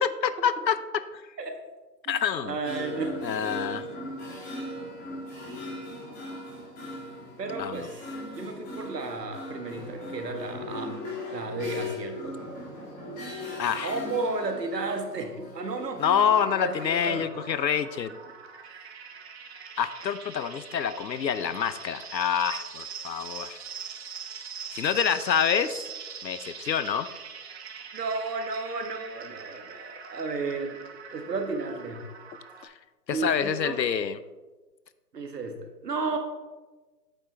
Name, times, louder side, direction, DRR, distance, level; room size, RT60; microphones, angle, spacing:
voice 1, 0.0-1.3 2.1-2.5 3.2-3.9 7.6-7.9 13.6-14.0 16.0-18.2 19.8-23.6 24.7-25.8 26.2-27.1 32.6-32.7 33.1-34.2, left 8 dB, 85° left, 14 dB, 0.8 m, -27 dB
voice 2, 2.4-3.2 7.4-8.0 8.3-11.0 11.3-12.4 13.8-16.0 16.6-17.3 27.9-30.8 31.1-32.0 33.1-33.9 35.1-36.2, right 3 dB, 70° right, 5 dB, 1.6 m, -33 dB
sound 1, 2.6-16.9, left 1 dB, 20° left, 2.7 m, -38 dB
sound 2, 16.0-32.6, right 6 dB, 40° right, 1.1 m, -43 dB
8.8 x 7.6 x 3.3 m, 1.2 s
hypercardioid pair, 145°, 50 cm